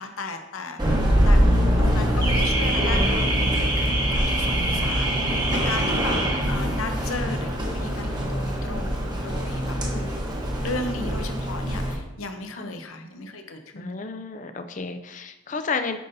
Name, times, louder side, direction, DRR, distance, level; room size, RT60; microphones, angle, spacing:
voice 1, 0.0-1.5 1.8-6.2 6.5-9.7 10.6-14.0, left 3 dB, 85° left, 6 dB, 0.8 m, -35 dB
Car / Alarm, 0.8-11.9, equal, 20° right, 1.0 m, -23 dB
voice 2, 5.6-6.2 9.8-10.2 12.5-12.7 13.8-16.0, left 4 dB, 35° left, 9 dB, 0.4 m, -32 dB
9.1 x 5.4 x 2.7 m, 0.96 s
head